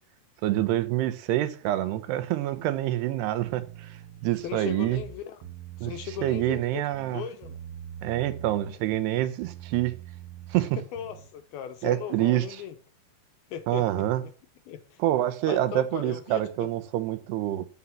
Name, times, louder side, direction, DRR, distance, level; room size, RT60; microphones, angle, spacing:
voice 1, 0.4-5.0 5.8-5.9 6.2-7.2 8.0-9.9 10.5-10.8 11.8-12.5 13.7-14.2 15.0-17.7, right 14 dB, 85° right, 2.9 m, -27 dB
sound 1, 3.4-4.5 4.8-6.6 6.9-8.7 8.9-11.3, right 9 dB, 65° right, 2.6 m, -43 dB
voice 2, 4.4-5.4 5.8-6.8 7.1-7.6 10.9-12.7 13.5-14.3 14.7-15.0 15.5-16.7, left 9 dB, 75° left, 2.6 m, -38 dB
13.0 x 5.6 x 7.3 m
omnidirectional pair, 4.9 m